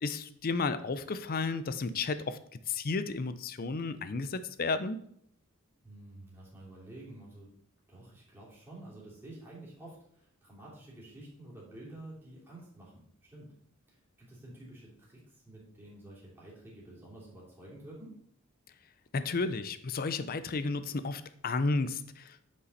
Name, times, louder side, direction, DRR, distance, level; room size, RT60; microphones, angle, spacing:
voice 1, 0.0-2.4 2.7-5.0 19.1-22.4, left 3 dB, 40° left, 13 dB, 0.5 m, -32 dB
voice 2, 5.8-7.5 7.9-13.5 13.9-18.1, right 1 dB, 10° right, -6 dB, 2.9 m, -50 dB
8.3 x 5.3 x 4.1 m, 0.66 s
head